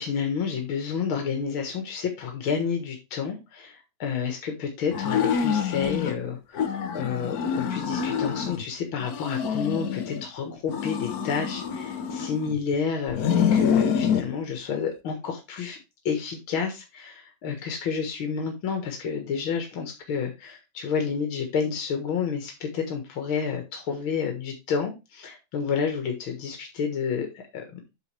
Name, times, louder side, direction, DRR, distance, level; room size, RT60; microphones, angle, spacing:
voice 1, 0.0-15.8 16.1-27.9, left 6 dB, 85° left, 4 dB, 2.3 m, -30 dB
sound 1, 4.9-6.2 6.5-8.6 9.0-10.3 10.7-12.6 13.1-14.3, left 7 dB, 55° left, 1.3 m, -26 dB
8.3 x 6.2 x 3.3 m, 0.25 s
omnidirectional pair, 2.2 m